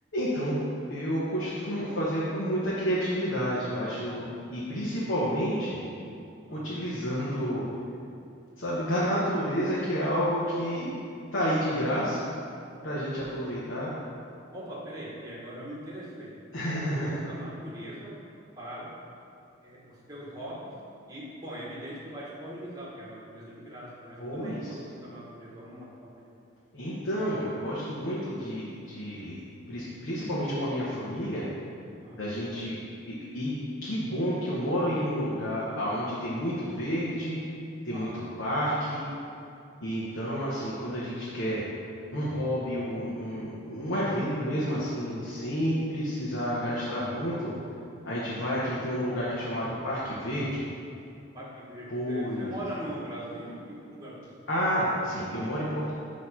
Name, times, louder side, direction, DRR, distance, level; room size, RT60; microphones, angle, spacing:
voice 1, 0.1-0.5 0.9-5.8 6.5-7.6 8.6-11.0 11.3-12.2 12.8-13.9 16.5-17.2 24.2-24.6 26.7-29.4 29.7-31.4 32.2-32.7 33.1-33.5 33.8-37.4 37.8-39.0 39.8-41.6 42.1-47.5 48.0-50.6 51.9-52.5 54.5-55.9, equal, 70° left, -8 dB, 1.0 m, -30 dB
voice 2, 14.5-16.4 16.9-18.1 18.6-18.9 19.6-20.7 21.1-26.2 32.0-32.3 37.9-38.5 45.4-45.5 51.3-54.3, right 1 dB, 20° right, -7 dB, 1.3 m, -41 dB
6.3 x 3.1 x 5.6 m, 2.5 s
head